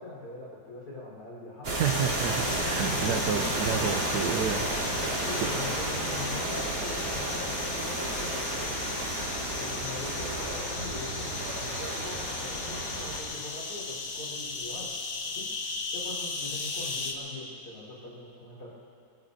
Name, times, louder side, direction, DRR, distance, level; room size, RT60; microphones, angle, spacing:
voice 1, 0.0-1.8 2.9-3.1 5.1-8.9 9.6-15.0 15.3-15.5 15.9-18.8, left 2 dB, 60° left, -6 dB, 4.8 m, -42 dB
sound 1, 1.6-13.2, right 1 dB, 50° right, 2.7 m, -32 dB
sound 2, 1.8-17.1, left 4 dB, 85° left, 2.1 m, -37 dB
voice 2, 1.8-4.7 4.9-5.0 5.4-5.5, right 9 dB, 70° right, 7 dB, 1.1 m, -30 dB
25.0 x 21.0 x 2.7 m, 2.6 s
omnidirectional pair, 2.0 m